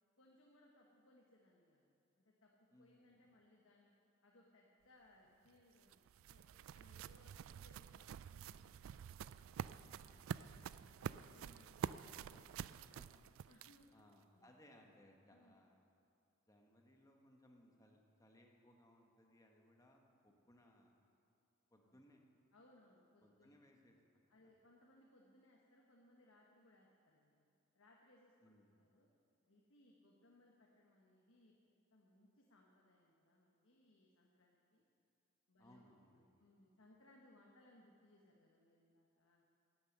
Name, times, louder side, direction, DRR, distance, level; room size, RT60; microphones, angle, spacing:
voice 1, 0.2-1.8 2.2-3.9 4.2-6.4 6.7-8.9 9.5-13.0 13.5-13.9 14.3-14.5 15.3-15.6 21.8-22.0 22.5-23.5 24.3-27.5 27.7-29.1 29.5-31.5 31.9-34.8 35.5-39.5, left 1 dB, 90° left, -2 dB, 1.3 m, -69 dB
voice 2, 2.7-3.3 12.7-13.2 13.9-15.8 16.5-20.9 21.7-22.2 23.2-24.6 28.4-28.7 35.6-36.4, left 1 dB, 15° left, 1 dB, 1.2 m, -67 dB
sound 1, 5.5-14.0, right 8 dB, 85° right, 0.3 m, -48 dB
11.5 x 8.9 x 7.7 m, 2.5 s
head